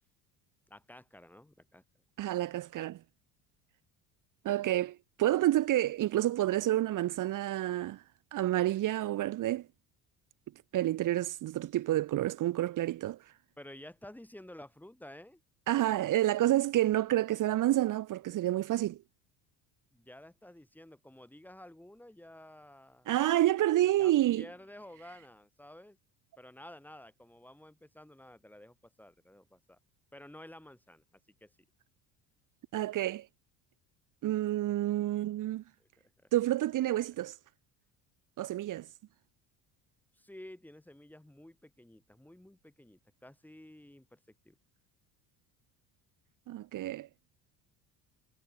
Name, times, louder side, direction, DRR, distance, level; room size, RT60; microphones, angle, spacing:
voice 1, 0.7-1.8 13.6-15.4 19.9-23.1 24.0-26.0 26.4-29.8 30.1-31.5 35.8-35.9 36.2-36.3 40.1-44.6, left 1 dB, 5° left, 4.0 m, -52 dB
voice 2, 2.2-3.0 4.4-8.0 8.3-9.7 10.7-13.2 15.7-19.0 23.1-24.4 32.7-33.3 34.2-35.6 36.3-37.4 38.4-38.9 46.5-47.1, right 14 dB, 50° right, 1.3 m, -29 dB
supercardioid pair, 100°, 39 cm